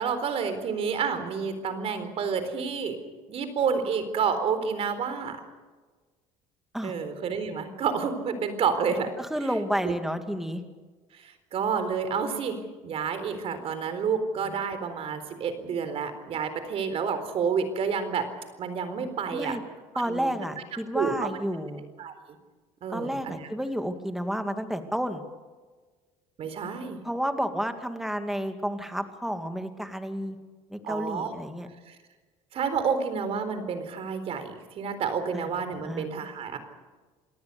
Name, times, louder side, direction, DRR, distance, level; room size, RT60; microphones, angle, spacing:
voice 1, 0.0-3.0 3.3-5.4 6.8-9.1 9.4-9.6 9.8-9.9 11.1-18.3 18.6-19.6 20.1-20.3 20.9-21.3 22.0-22.1 22.8-23.5 26.4-27.0 30.8-31.3 31.9-32.0 32.5-36.6, right 6 dB, 50° right, 10 dB, 4.0 m, -29 dB
voice 2, 9.2-10.6 14.5-14.6 19.3-19.6 20.0-21.9 22.9-25.2 27.0-30.4 30.7-31.7 35.3-35.5 35.8-36.1, equal, 5° right, 7 dB, 2.2 m, -31 dB
27.5 x 18.5 x 6.9 m, 1.4 s
cardioid pair, 120°, 13 cm